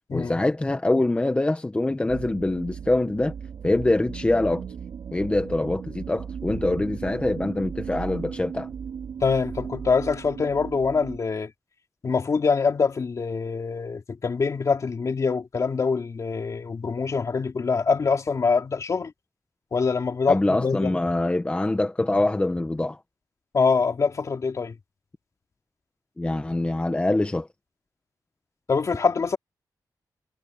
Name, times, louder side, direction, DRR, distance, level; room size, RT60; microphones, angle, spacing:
voice 1, 0.1-3.3 3.6-4.6 5.1-8.7 20.3-23.0 26.2-27.5, left 2 dB, 15° left, 1.2 m, -24 dB
sound 1, 2.1-11.2, right 7 dB, 80° right, 3.2 m, -36 dB
voice 2, 9.2-11.5 12.0-19.1 19.7-20.9 23.5-24.7 28.7-29.4, left 5 dB, 45° left, 3.0 m, -24 dB
wide cardioid pair, 125°, 7 cm